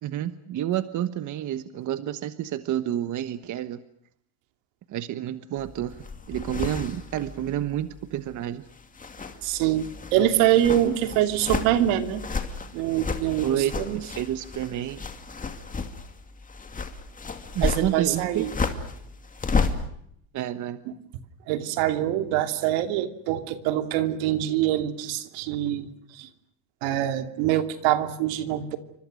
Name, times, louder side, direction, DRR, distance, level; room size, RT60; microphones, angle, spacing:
voice 1, 0.0-3.8 4.9-6.0 6.3-8.6 10.2-10.3 10.8-10.9 13.4-15.0 17.5-18.5 20.3-20.8, right 11 dB, 40° right, 11 dB, 1.2 m, -29 dB
sound 1, 5.6-8.4 8.7-19.9, left 4 dB, 15° left, 2.5 m, -33 dB
voice 2, 9.4-12.2 12.7-14.0 17.6-18.5 20.9-21.0 21.5-26.3 26.8-28.8, right 12 dB, 70° right, 8 dB, 2.8 m, -25 dB
29.5 x 25.0 x 6.5 m, 0.70 s
cardioid pair, 145°, 48 cm